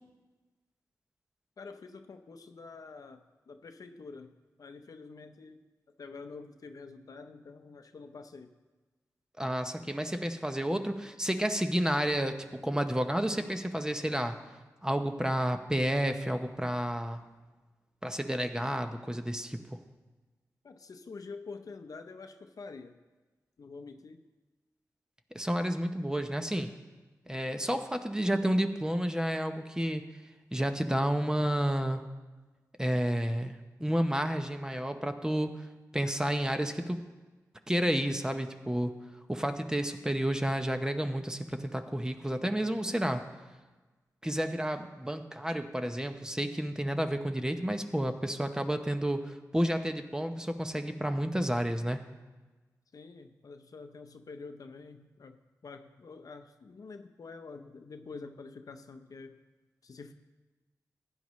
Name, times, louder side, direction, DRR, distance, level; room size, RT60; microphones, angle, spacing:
voice 1, 1.6-4.3 4.6-5.6 6.0-8.5 20.6-23.0 23.6-24.2 52.9-59.4 59.8-60.1, left 4 dB, 65° left, 8 dB, 0.7 m, -47 dB
voice 2, 9.4-12.4 12.6-14.4 14.8-17.3 18.0-19.8 25.3-26.7 27.3-30.0 30.5-32.0 32.8-35.7 35.9-37.0 37.7-39.0 39.3-43.2 44.2-52.0, equal, 10° right, 7 dB, 0.8 m, -31 dB
15.5 x 9.8 x 3.1 m, 1.2 s
wide cardioid pair, 70°, 7 cm